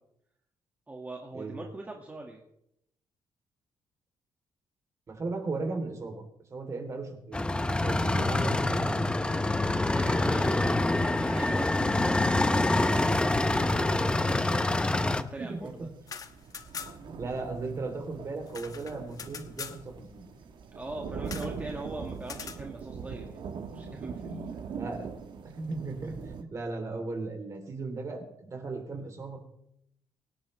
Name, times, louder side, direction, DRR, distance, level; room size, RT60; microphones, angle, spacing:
voice 1, 0.9-2.4 9.6-15.9 20.7-23.4 23.7-24.6, right 2 dB, 20° right, 0 dB, 1.9 m, -42 dB
voice 2, 5.1-6.2 6.5-7.5 7.8-9.1 15.4-15.9 17.1-20.3 24.7-25.1 25.4-29.4, right 3 dB, 35° right, 3 dB, 3.3 m, -36 dB
sound 1, 7.3-15.2, left 2 dB, 10° left, 0.7 m, -26 dB
sound 2, 14.8-26.4, right 5 dB, 60° right, 1.4 m, -42 dB
sound 3, 15.9-17.2 17.4-17.5 17.8-19.8 21.2-21.6 22.2-22.6, left 6 dB, 45° left, 1.1 m, -42 dB
24.0 x 10.0 x 3.3 m, 0.78 s
cardioid pair, 125°, 9 cm